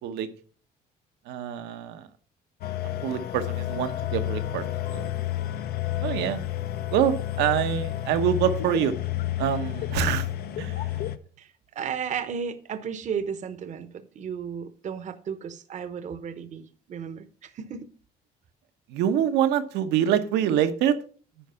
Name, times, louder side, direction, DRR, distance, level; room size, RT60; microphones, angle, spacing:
voice 1, 1.3-2.1 3.0-4.6 4.9-5.1 6.0-6.4 6.9-8.9 9.4-10.3 10.6-10.9 18.9-21.0, right 9 dB, 85° right, 1.0 m, -25 dB
sound 1, 2.6-11.2, left 13 dB, 70° left, 0.7 m, -30 dB
voice 2, 11.4-17.9, right 7 dB, 45° right, 0.8 m, -34 dB
10.5 x 4.7 x 5.6 m
cardioid pair, 110°, 17 cm